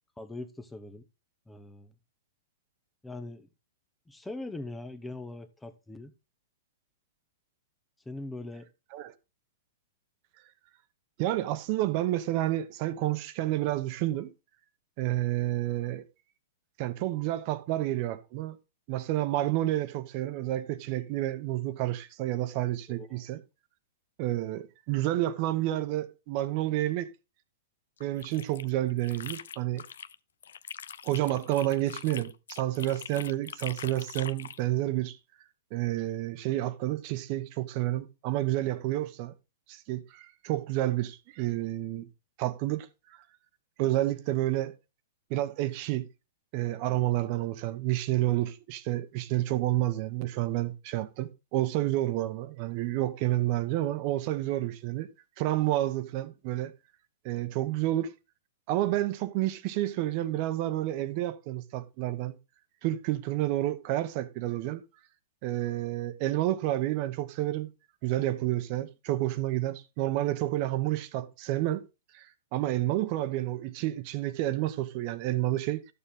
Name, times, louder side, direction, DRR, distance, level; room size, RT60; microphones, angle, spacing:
voice 1, 0.2-1.0 1.5-1.9 3.0-3.5 4.1-6.1 8.1-8.7 22.9-23.3, left 2 dB, 5° left, 0.7 m, -41 dB
voice 2, 11.2-14.3 15.0-16.0 16.8-18.6 18.9-23.4 24.2-27.1 28.0-29.8 31.0-35.2 35.7-39.3 39.7-42.1 42.4-42.9 43.8-44.7 45.3-46.1 46.5-55.1 55.4-56.7 57.2-58.1 58.7-62.4 62.8-64.8 65.4-67.7 68.0-71.8 72.1-72.3 72.5-75.8, right 15 dB, 45° right, 1.0 m, -30 dB
sound 1, 28.0-30.2 30.4-34.6, left 8 dB, 80° left, 0.6 m, -43 dB
12.5 x 6.9 x 3.6 m
hypercardioid pair, 140°, 0 cm